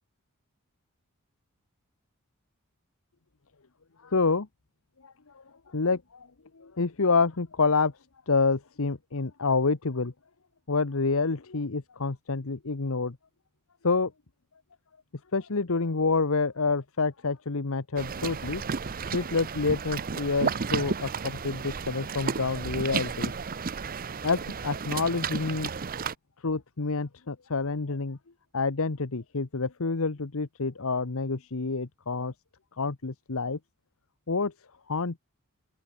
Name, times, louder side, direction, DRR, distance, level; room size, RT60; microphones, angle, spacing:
voice 1, 4.0-4.5 5.0-6.3 6.5-7.9 8.3-10.1 10.7-13.2 13.8-14.1 15.3-18.6 19.1-23.3 24.2-25.7 26.4-28.2 28.5-32.3 32.8-33.6 34.3-34.5 34.9-35.2, left 4 dB, 70° left, 1.1 m, -28 dB
sound 1, 18.0-26.1, right 5 dB, 40° right, 0.7 m, -33 dB
open air
head